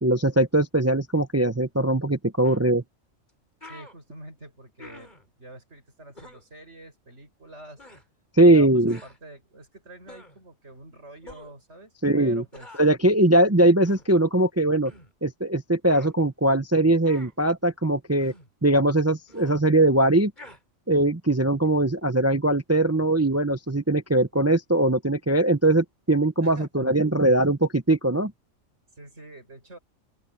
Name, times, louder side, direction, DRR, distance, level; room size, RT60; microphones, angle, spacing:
voice 1, 0.0-2.8 8.4-9.0 12.0-12.4 12.8-14.9 15.2-18.3 18.6-20.3 20.9-28.3, right 1 dB, 15° right, 0.5 m, -21 dB
sound 1, 2.4-2.6 3.3-3.4 3.6-4.0 4.8-5.3 6.2-6.4 7.8-8.0 8.9-9.2 10.1-10.4 11.2-11.6 12.5-12.9 13.8-14.1 14.9-15.1 15.9-16.1 17.0-17.3 18.2-18.5 19.3-19.6 20.4-20.6, left 2 dB, 35° left, 6.9 m, -47 dB
voice 2, 3.6-5.1 5.4-7.9 8.5-12.8 26.4-26.9 28.9-29.8, right 1 dB, 55° right, 7.0 m, -46 dB
open air
omnidirectional pair, 1.4 m